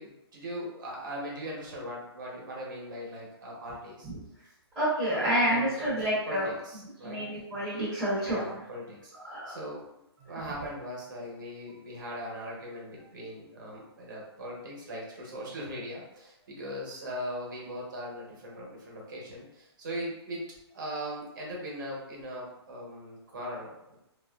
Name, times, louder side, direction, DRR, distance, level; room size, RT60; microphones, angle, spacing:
voice 1, 0.0-4.1 5.1-5.9 6.3-7.2 8.2-9.1 9.5-20.4 20.7-24.0, equal, 45° right, -3 dB, 1.0 m, -40 dB
voice 2, 4.7-6.5 7.0-8.4 9.2-9.6, right 1 dB, 5° right, -15 dB, 0.8 m, -28 dB
2.9 x 2.5 x 2.2 m, 0.85 s
hypercardioid pair, 175°, 14 cm